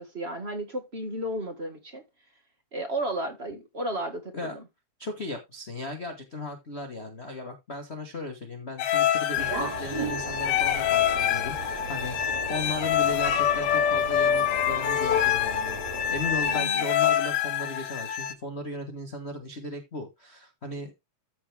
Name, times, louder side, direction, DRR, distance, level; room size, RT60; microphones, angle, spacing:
voice 1, 0.0-2.0 2.7-4.6 16.4-16.8, right 1 dB, 35° right, 1.0 m, -33 dB
voice 2, 5.0-20.9, left 2 dB, 40° left, 0.9 m, -36 dB
sound 1, 8.8-18.3, left 10 dB, 70° left, 1.5 m, -26 dB
sound 2, 9.3-16.6, right 2 dB, 65° right, 4.9 m, -36 dB
14.0 x 4.7 x 3.4 m
omnidirectional pair, 3.3 m